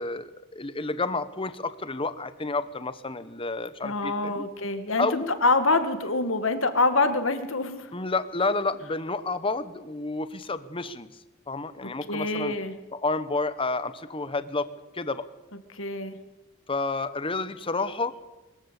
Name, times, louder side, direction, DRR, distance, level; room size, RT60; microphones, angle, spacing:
voice 1, 0.0-4.4 5.0-5.3 7.9-11.1 11.5-12.5 12.9-15.3 16.7-18.1, left 3 dB, 25° left, 13 dB, 1.0 m, -30 dB
voice 2, 3.8-7.9 12.1-12.7 15.7-16.2, left 3 dB, 70° left, 9 dB, 2.0 m, -25 dB
22.5 x 14.0 x 8.3 m, 1.1 s
head